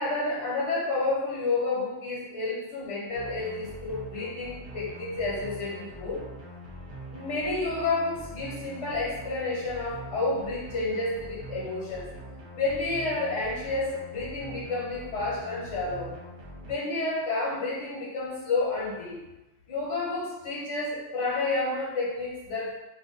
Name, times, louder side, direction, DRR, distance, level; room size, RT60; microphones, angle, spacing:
voice 1, 0.0-6.2 7.1-12.0 12.5-16.1 16.6-19.2 19.7-22.8, left 3 dB, 60° left, -6 dB, 1.3 m, -30 dB
sound 1, 3.1-16.8, equal, 60° right, 1.0 m, -43 dB
2.6 x 2.4 x 3.8 m, 1.0 s
omnidirectional pair, 1.4 m